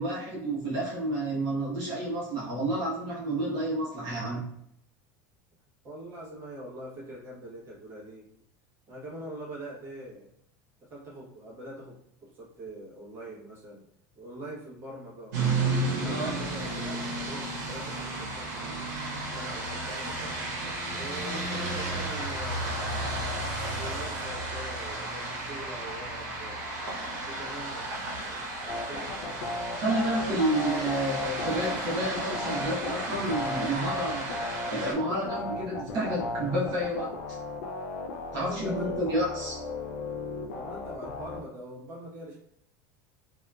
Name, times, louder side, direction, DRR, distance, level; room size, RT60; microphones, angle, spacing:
voice 1, 0.0-4.5 16.0-16.4 29.8-37.1 38.3-39.6, right 1 dB, 50° right, -6 dB, 0.9 m, -30 dB
voice 2, 5.8-8.3 8.9-10.3 10.8-13.8 14.1-15.4 15.9-18.9 19.3-20.5 20.9-23.1 23.7-26.7 27.2-29.5 38.3-39.2 40.5-42.4, right 1 dB, 25° right, -6 dB, 1.0 m, -43 dB
sound 1, 15.3-34.9, right 2 dB, 90° right, 0.8 m, -33 dB
sound 2, 28.7-41.4, left 3 dB, 80° left, 0.4 m, -35 dB
2.7 x 2.4 x 2.2 m, 0.70 s
supercardioid pair, 150°, 9 cm